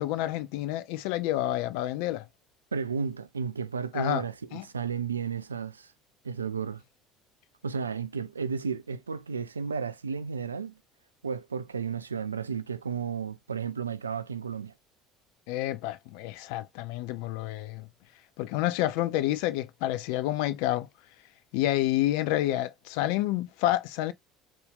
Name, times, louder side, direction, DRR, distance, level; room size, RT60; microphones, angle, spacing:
voice 1, 0.0-2.2 3.9-4.2 4.5-4.6 15.5-17.9 18.4-20.9 21.5-24.1, left 15 dB, 65° left, 0.4 m, -29 dB
voice 2, 2.7-5.9 6.2-6.8 7.6-10.8 11.2-14.7, right 6 dB, 90° right, 0.4 m, -33 dB
4.2 x 2.5 x 3.6 m
hypercardioid pair, 65°, 0 cm